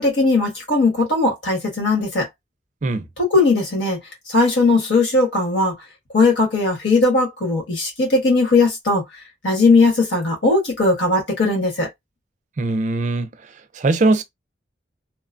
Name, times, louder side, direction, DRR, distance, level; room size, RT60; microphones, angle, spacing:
voice 1, 0.0-2.3 3.2-4.0 4.3-5.7 6.1-9.0 9.4-11.9, left 3 dB, 80° left, 1.5 m, -18 dB
voice 2, 12.6-13.3 13.7-14.2, right 2 dB, 40° right, 0.4 m, -20 dB
2.9 x 2.1 x 2.5 m
head